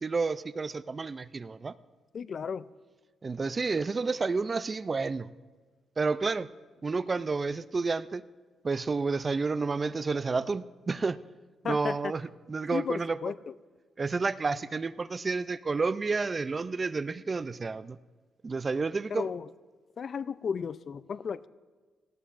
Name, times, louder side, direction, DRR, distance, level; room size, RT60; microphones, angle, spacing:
voice 1, 0.0-1.7 3.2-5.3 6.0-6.5 6.8-8.2 8.6-11.2 11.6-13.2 14.0-18.0 18.4-19.3, right 4 dB, 30° right, 16 dB, 0.4 m, -30 dB
voice 2, 2.1-2.7 11.6-12.1 12.7-13.4 19.1-19.5 20.0-21.5, left 6 dB, 50° left, 17 dB, 0.4 m, -34 dB
18.5 x 16.5 x 2.5 m, 1.4 s
cardioid pair, 110°, 0 cm